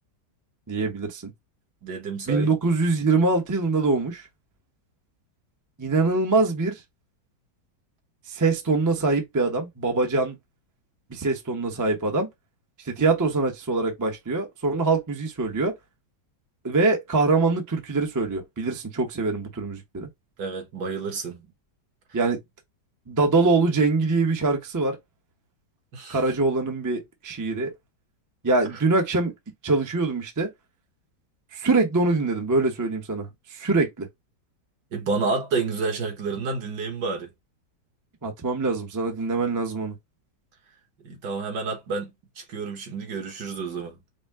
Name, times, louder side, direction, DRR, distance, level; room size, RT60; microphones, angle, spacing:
voice 1, 0.7-1.3 2.3-4.3 5.8-6.8 8.3-10.4 11.1-12.3 12.8-15.7 16.6-20.1 22.1-22.4 23.1-25.0 26.1-27.7 28.4-29.3 29.6-30.5 31.5-34.1 38.2-39.9, right 3 dB, 25° right, 0.4 m, -24 dB
voice 2, 1.8-2.5 20.4-21.5 25.9-26.2 34.9-37.3 41.0-42.1 42.4-44.0, right 4 dB, 70° right, 1.7 m, -29 dB
5.0 x 2.0 x 3.5 m
omnidirectional pair, 1.9 m